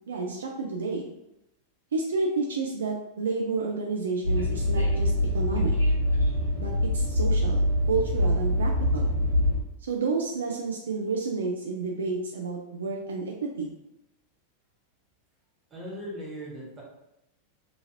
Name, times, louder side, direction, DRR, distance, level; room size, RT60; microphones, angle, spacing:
voice 1, 0.1-1.1 1.9-5.7 6.6-7.6 7.9-9.1 9.9-13.7, right 4 dB, 65° right, 0 dB, 0.3 m, -30 dB
Train, 4.2-9.6, left 1 dB, 80° left, 0.6 m, -24 dB
voice 2, 15.7-16.8, equal, 25° right, -4 dB, 1.1 m, -38 dB
2.9 x 2.4 x 2.7 m, 0.85 s
figure-of-eight pair, 90°, 0 cm